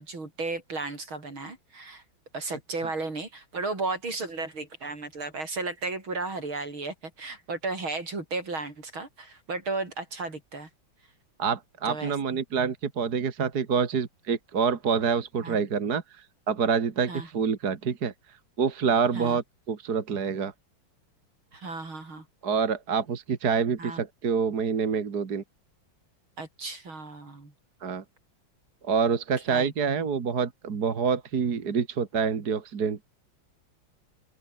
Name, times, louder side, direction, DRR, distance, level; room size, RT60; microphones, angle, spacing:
voice 1, 0.0-2.0 2.3-10.7 11.8-12.4 15.4-15.6 17.1-17.3 19.1-19.4 21.5-22.2 23.8-24.0 26.4-27.5 29.5-29.7, right 3 dB, 80° right, 6.6 m, -34 dB
voice 2, 11.4-18.1 18.6-20.5 22.4-25.4 27.8-28.0 28.8-33.0, right 6 dB, 50° right, 2.4 m, -27 dB
open air
omnidirectional pair, 2.2 m